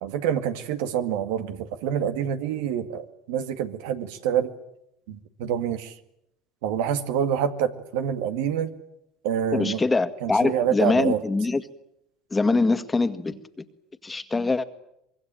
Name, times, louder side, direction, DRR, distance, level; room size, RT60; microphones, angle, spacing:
voice 1, 0.0-4.5 5.1-5.9 6.6-8.7 9.2-9.8 10.2-11.2, right 9 dB, 80° right, 2.1 m, -27 dB
voice 2, 9.5-11.6 12.3-13.4 14.0-14.6, left 3 dB, 20° left, 1.9 m, -23 dB
25.0 x 21.5 x 9.0 m
supercardioid pair, 95°, 0 cm